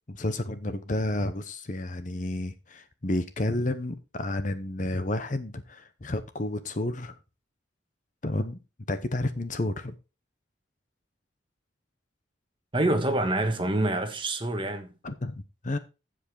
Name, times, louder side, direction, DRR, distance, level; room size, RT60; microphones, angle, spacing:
voice 1, 0.1-7.2 8.2-8.6 8.9-10.0 15.0-15.8, left 1 dB, 40° left, 0.8 m, -31 dB
voice 2, 12.7-14.9, right 1 dB, 25° right, 1.3 m, -26 dB
15.5 x 5.2 x 3.8 m
head